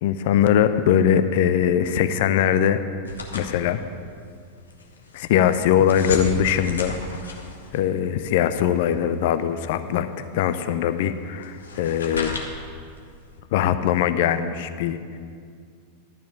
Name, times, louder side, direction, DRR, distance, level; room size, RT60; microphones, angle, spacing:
voice 1, 0.0-2.8 3.3-3.8 5.1-6.9 7.2-7.3 7.7-12.4 13.5-15.2, left 9 dB, 50° left, 11 dB, 0.4 m, -21 dB
sound 1, 3.0-13.4, left 3 dB, 75° left, 1.1 m, -36 dB
12.0 x 4.5 x 8.3 m, 2.2 s
figure-of-eight pair, 90°, 0 cm